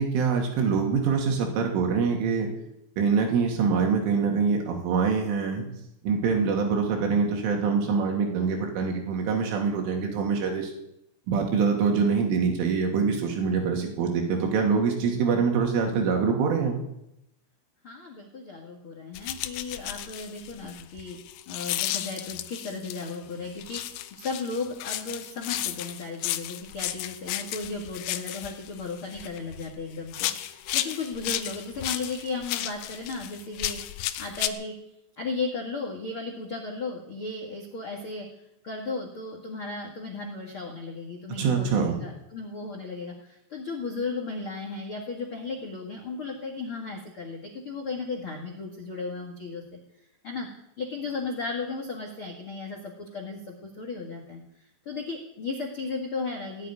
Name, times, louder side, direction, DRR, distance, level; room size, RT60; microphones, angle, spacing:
voice 1, 0.0-2.5 3.0-5.7 6.0-10.7 11.3-16.8 41.3-42.0, right 5 dB, 70° right, 1 dB, 5.2 m, -24 dB
voice 2, 17.8-21.2 21.4-33.8 34.2-34.7 35.2-38.3 38.6-49.8 50.2-50.5 50.8-54.4 54.8-56.7, left 3 dB, 65° left, 2 dB, 1.3 m, -35 dB
sound 1, 19.1-23.2 23.6-29.7 30.1-34.5, left 14 dB, 85° left, 3.4 m, -33 dB
17.5 x 8.3 x 9.8 m, 0.81 s
omnidirectional pair, 5.9 m